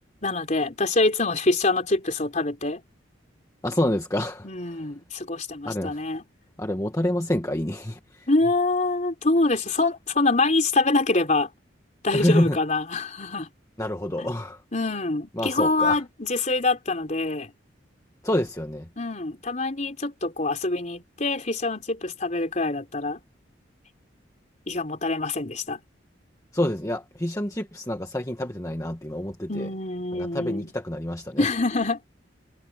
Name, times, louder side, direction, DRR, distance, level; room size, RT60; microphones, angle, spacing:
voice 1, 0.2-2.8 4.4-6.2 8.3-11.5 12.0-13.5 14.2-14.3 14.7-17.5 19.0-23.2 24.7-25.8 29.5-30.7 31.4-32.0, left 2 dB, 40° left, 3.8 m, -25 dB
voice 2, 3.6-4.8 5.6-6.0 6.6-8.3 12.1-12.6 13.8-14.6 15.4-16.0 18.2-18.9 26.5-29.7 30.1-31.5, left 1 dB, 15° left, 1.4 m, -27 dB
head